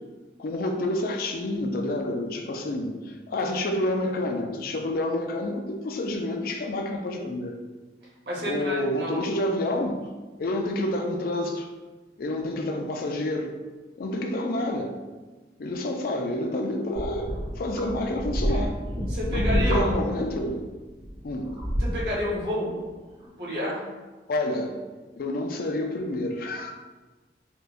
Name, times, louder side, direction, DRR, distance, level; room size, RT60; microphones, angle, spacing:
voice 1, 0.4-7.6 8.4-10.0 10.4-11.7 12.2-13.6 14.0-14.9 15.6-18.8 19.3-20.7 21.2-21.5 24.3-24.8 25.1-26.7, left 1 dB, 55° left, 3 dB, 0.4 m, -28 dB
voice 2, 8.2-9.3 19.1-19.9 21.8-22.7 23.2-23.9, equal, 65° right, -6 dB, 1.1 m, -30 dB
sound 1, 16.9-22.2 23.0-23.1, equal, 90° right, 1.5 m, -29 dB
4.4 x 2.2 x 2.4 m, 1.2 s
head